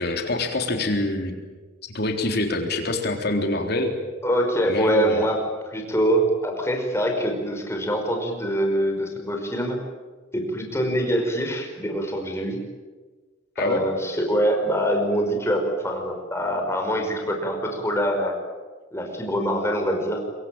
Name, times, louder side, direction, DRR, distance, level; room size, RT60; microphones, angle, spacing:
voice 1, 0.0-1.4 1.9-4.0 4.7-5.2 13.6-13.8, left 2 dB, 55° left, 4 dB, 3.8 m, -25 dB
voice 2, 4.2-5.4 5.7-9.8 10.3-12.6 13.6-18.4 18.9-20.2, equal, 15° left, 3 dB, 5.4 m, -24 dB
26.0 x 23.5 x 8.9 m, 1.3 s
head